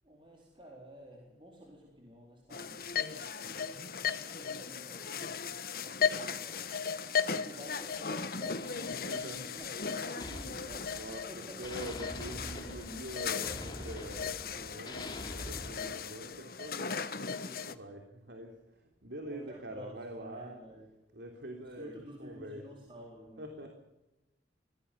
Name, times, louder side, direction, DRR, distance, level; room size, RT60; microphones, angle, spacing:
voice 1, 0.0-7.0 7.3-11.7 18.3-18.5 19.3-21.0 21.6-23.7, equal, 30° right, 4.1 m, -52 dB
sound 1, 2.5-17.7, left 6 dB, 55° left, 1.3 m, -37 dB
sound 2, 7.7-11.3 11.6-15.7, left 1 dB, 25° left, 3.0 m, -46 dB
voice 2, 9.0-9.6 10.9-11.2 11.6-20.6 21.1-22.6 23.4-23.7, right 1 dB, 80° right, 3.3 m, -45 dB
24.5 x 18.0 x 8.5 m
head